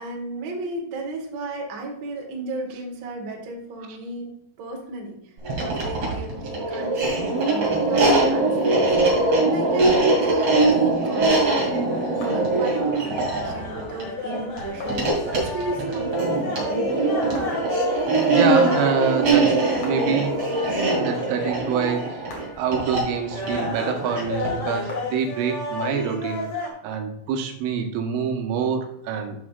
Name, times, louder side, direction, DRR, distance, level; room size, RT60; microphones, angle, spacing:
voice 1, 0.0-16.9, right 2 dB, 60° right, 0 dB, 1.9 m, -34 dB
sound 1, 5.4-24.7, right 2 dB, 40° right, 2.8 m, -22 dB
sound 2, 11.3-26.7, left 1 dB, 70° left, 1.3 m, -32 dB
voice 2, 18.3-22.3 22.6-26.5 26.8-29.4, right 6 dB, 90° right, 4 dB, 3.7 m, -26 dB
13.0 x 6.2 x 2.4 m, 0.76 s
omnidirectional pair, 5.7 m